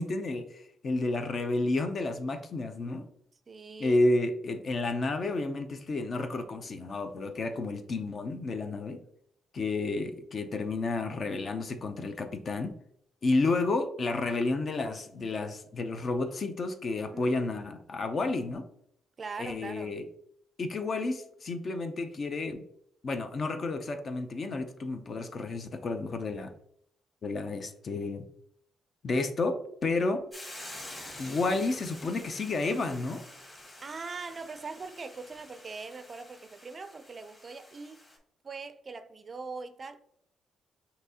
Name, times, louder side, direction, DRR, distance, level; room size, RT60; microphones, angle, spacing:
voice 1, 0.0-3.1 3.8-9.0 9.5-12.8 13.2-18.6 19.4-20.0 20.6-22.6 23.0-26.5 27.2-28.3 29.0-30.2 31.2-33.2, left 2 dB, 45° left, 0.5 m, -31 dB
voice 2, 3.5-4.0 17.1-17.3 19.2-20.0 30.0-30.1 33.8-38.0 38.4-40.0, right 4 dB, 35° right, 0.4 m, -41 dB
Hiss / Boiling, 30.3-38.2, left 1 dB, 20° left, 1.6 m, -48 dB
5.9 x 2.7 x 2.8 m
cardioid pair, 90°, 0 cm